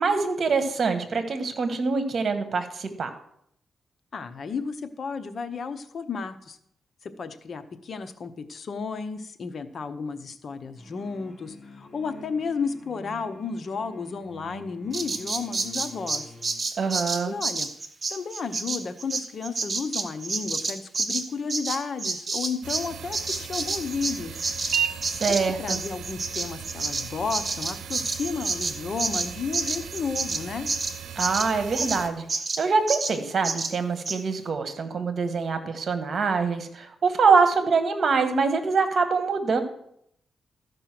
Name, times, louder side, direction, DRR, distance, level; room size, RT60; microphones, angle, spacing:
voice 1, 0.0-3.1 16.8-17.3 25.0-25.8 31.2-32.3 32.6-39.6, right 4 dB, 55° right, 8 dB, 1.4 m, -24 dB
voice 2, 4.1-6.6 7.0-16.3 17.3-17.7 18.1-24.4 25.6-30.7, left 5 dB, 55° left, 10 dB, 0.9 m, -33 dB
sound 1, 10.8-16.6, left 1 dB, 20° left, 3.5 m, -46 dB
Bird vocalization bird call bird song, 14.9-22.9 23.1-32.0 32.3-32.6 32.9-33.2 33.4-33.7 34.1-34.2, right 3 dB, 35° right, 1.0 m, -29 dB
sound 2, 22.6-32.1, right 8 dB, 90° right, 0.8 m, -36 dB
13.5 x 5.3 x 6.0 m, 0.72 s
cardioid pair, 95°, 0 cm